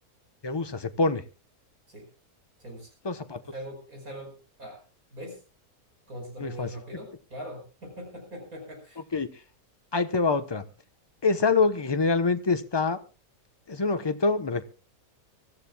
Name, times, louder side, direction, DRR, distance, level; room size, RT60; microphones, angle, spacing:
voice 1, 0.4-1.2 3.0-3.4 6.4-6.7 9.1-9.3 9.9-10.6 11.2-13.0 13.7-14.6, left 4 dB, 20° left, 10 dB, 0.8 m, -25 dB
voice 2, 2.6-2.9 3.5-4.8 5.1-5.4 6.1-9.0, equal, 70° right, 3 dB, 5.6 m, -41 dB
24.0 x 14.0 x 2.3 m, 0.33 s
omnidirectional pair, 1.6 m